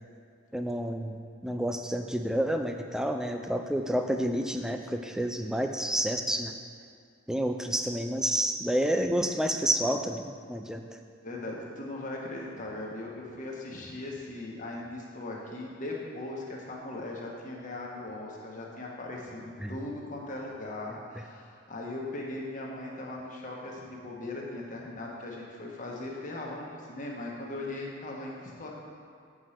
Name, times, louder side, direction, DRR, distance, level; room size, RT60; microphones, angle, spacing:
voice 1, 0.5-6.5 7.3-10.8 19.6-19.8, equal, 5° right, 5 dB, 0.3 m, -29 dB
voice 2, 11.2-28.8, left 2 dB, 40° left, -2 dB, 1.2 m, -39 dB
7.7 x 5.0 x 5.7 m, 2.3 s
head